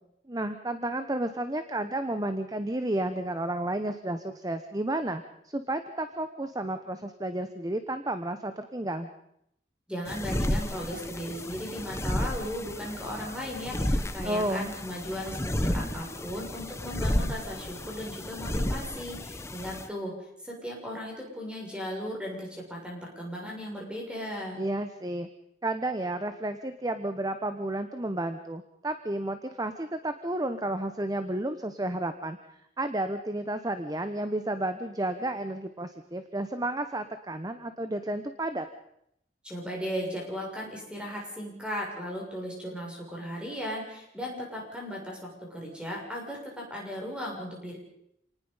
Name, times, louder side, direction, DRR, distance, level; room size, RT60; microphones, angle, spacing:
voice 1, 0.3-9.1 14.2-14.7 24.6-25.3 25.6-32.4 32.8-38.7, right 1 dB, 20° right, 9 dB, 1.0 m, -32 dB
voice 2, 9.9-20.1 20.4-24.6 39.4-47.8, equal, 5° right, -1 dB, 7.0 m, -36 dB
sound 1, 10.1-19.9, left 1 dB, 15° left, 1.0 m, -32 dB
27.5 x 19.5 x 5.7 m, 0.75 s
head